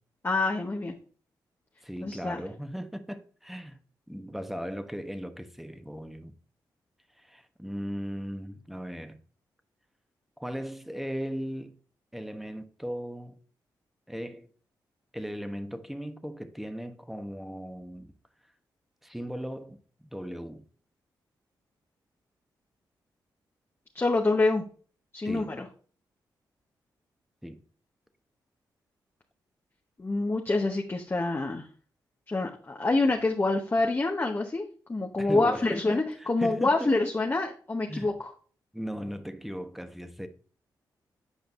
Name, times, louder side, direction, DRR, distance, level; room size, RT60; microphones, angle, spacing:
voice 1, 0.2-0.9 2.0-2.4 23.9-24.6 25.1-25.7 30.0-31.7 32.3-34.6 34.9-38.3, left 2 dB, 30° left, 1.0 m, -26 dB
voice 2, 1.8-3.8 4.1-6.3 7.2-9.2 10.4-11.8 12.1-13.4 14.1-14.5 15.1-18.1 19.0-20.6 25.2-25.6 27.4-27.6 35.2-36.9 37.9-38.1 38.7-40.3, equal, ahead, 1.0 m, -37 dB
8.2 x 5.1 x 2.5 m
supercardioid pair, 50°, 8 cm